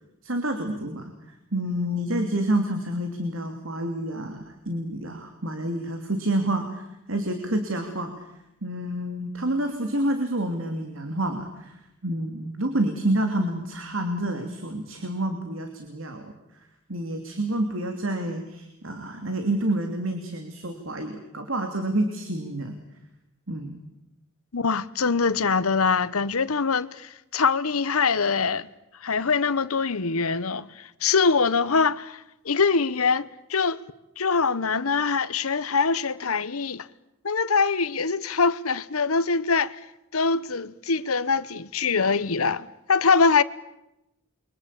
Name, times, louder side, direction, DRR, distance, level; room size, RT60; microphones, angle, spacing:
voice 1, 0.2-1.1 1.5-8.3 8.6-16.3 16.9-22.8 23.5-23.8, right 1 dB, 65° right, 3.0 m, -28 dB
voice 2, 24.5-28.7 29.0-33.8 34.2-36.9 37.2-39.8 40.1-43.4, left 5 dB, 85° left, 1.1 m, -23 dB
29.0 x 24.0 x 8.5 m
head